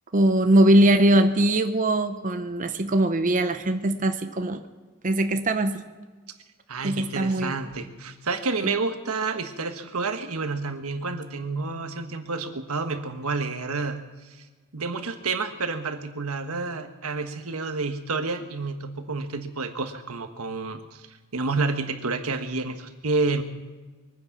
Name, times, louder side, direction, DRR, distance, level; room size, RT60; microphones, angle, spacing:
voice 1, 0.1-4.6 5.0-5.9 6.8-7.6 8.6-8.7, right 1 dB, 35° right, 7 dB, 0.8 m, -21 dB
voice 2, 6.7-14.0 14.2-14.4 14.7-21.1 21.3-23.4, right 3 dB, 75° right, 7 dB, 1.4 m, -29 dB
23.0 x 9.6 x 6.1 m, 1.4 s
head